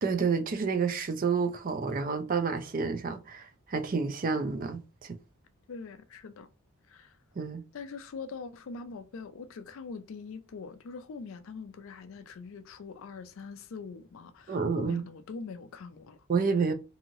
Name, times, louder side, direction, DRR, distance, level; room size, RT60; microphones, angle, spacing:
voice 1, 0.0-5.2 7.4-7.6 14.5-15.0 16.3-16.7, right 5 dB, 40° right, 0.4 m, -29 dB
voice 2, 5.7-6.5 6.9-7.2 7.7-16.3, left 4 dB, 60° left, 0.4 m, -43 dB
2.9 x 2.7 x 2.6 m
head